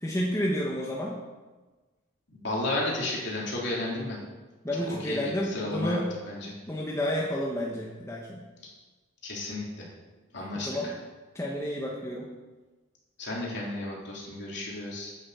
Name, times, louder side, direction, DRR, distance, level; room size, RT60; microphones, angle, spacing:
voice 1, 0.0-1.2 4.6-6.1 6.7-8.4 10.5-10.9 11.3-12.3, equal, 15° left, -3 dB, 1.2 m, -30 dB
voice 2, 2.3-4.2 5.1-6.0 6.3-6.5 9.2-9.9 10.3-10.9 13.2-15.1, left 2 dB, 55° left, -4 dB, 3.4 m, -33 dB
9.3 x 8.1 x 7.0 m, 1.2 s
head